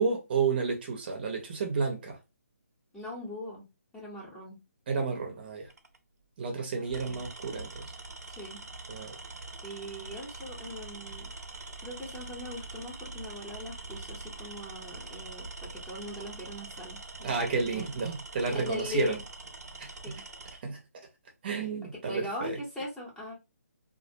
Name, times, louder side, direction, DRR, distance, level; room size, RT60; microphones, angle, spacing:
voice 1, 0.0-2.2 4.9-5.7 6.4-7.9 8.9-9.2 17.2-19.2 19.8-20.1 20.6-20.8 21.4-22.6, right 4 dB, 40° right, 0.6 m, -31 dB
voice 2, 2.9-3.7 3.9-4.6 7.1-7.2 8.3-8.6 9.6-11.3 11.8-17.9 18.5-19.2 20.0-20.2 22.0-23.3, left 2 dB, 5° left, 0.7 m, -40 dB
Tools, 5.7-6.0 6.8-20.6, right 2 dB, 80° right, 0.6 m, -44 dB
2.4 x 2.0 x 2.6 m
hypercardioid pair, 150°, 8 cm